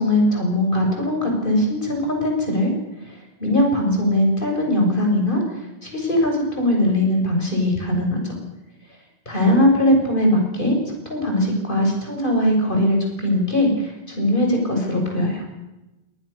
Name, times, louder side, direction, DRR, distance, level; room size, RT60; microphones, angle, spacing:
voice 1, 0.0-2.7 3.0-5.4 5.8-8.3 9.3-10.8 11.1-15.4, left 1 dB, 55° left, 1 dB, 7.1 m, -20 dB
24.0 x 19.0 x 6.9 m, 0.99 s
omnidirectional pair, 1.1 m